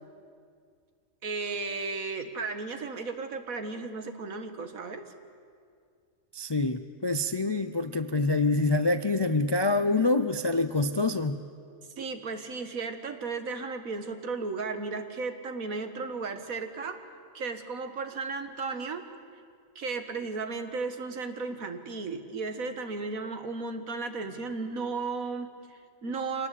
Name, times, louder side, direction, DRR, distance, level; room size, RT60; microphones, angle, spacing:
voice 1, 1.2-5.0 12.0-17.0 17.3-19.1 19.8-26.5, right 4 dB, 85° right, 8 dB, 1.9 m, -35 dB
voice 2, 6.3-11.4, left 2 dB, 35° left, 10 dB, 0.4 m, -26 dB
25.0 x 19.0 x 8.3 m, 2.2 s
omnidirectional pair, 1.4 m